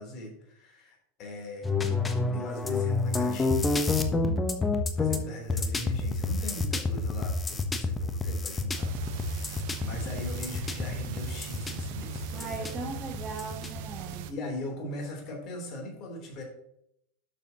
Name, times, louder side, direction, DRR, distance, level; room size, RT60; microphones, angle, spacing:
voice 1, 0.0-1.7 2.3-3.7 5.0-8.9 9.3-12.7 14.3-16.4, left 1 dB, 40° left, 1 dB, 3.4 m, -40 dB
sound 1, 1.6-14.2, left 3 dB, 15° left, 1.0 m, -29 dB
voice 2, 4.2-4.6 12.3-14.3, right 3 dB, 25° right, 1 dB, 1.4 m, -39 dB
sound 2, 8.7-14.3, right 15 dB, 55° right, 0.8 m, -41 dB
11.5 x 7.1 x 3.0 m, 0.75 s
figure-of-eight pair, 85°, 0 cm